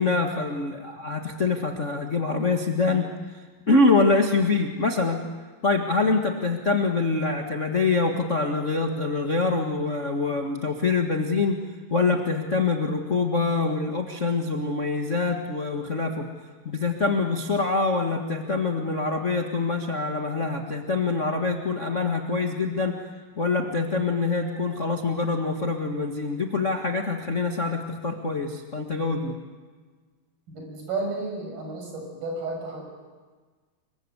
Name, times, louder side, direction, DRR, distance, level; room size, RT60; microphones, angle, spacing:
voice 1, 0.0-5.2 5.6-11.6 11.9-16.2 16.6-22.9 23.4-29.3, left 3 dB, 75° left, 2 dB, 0.6 m, -25 dB
voice 2, 30.5-32.8, right 3 dB, 70° right, 1 dB, 8.1 m, -32 dB
27.0 x 23.5 x 8.0 m, 1.4 s
omnidirectional pair, 4.3 m